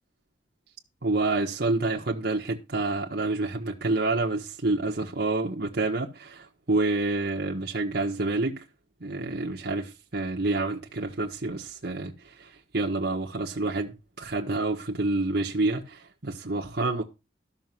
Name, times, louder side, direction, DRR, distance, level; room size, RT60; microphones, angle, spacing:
voice 1, 1.0-8.6 9.0-17.0, right 2 dB, 60° right, 1.5 m, -28 dB
13.0 x 6.5 x 6.1 m
head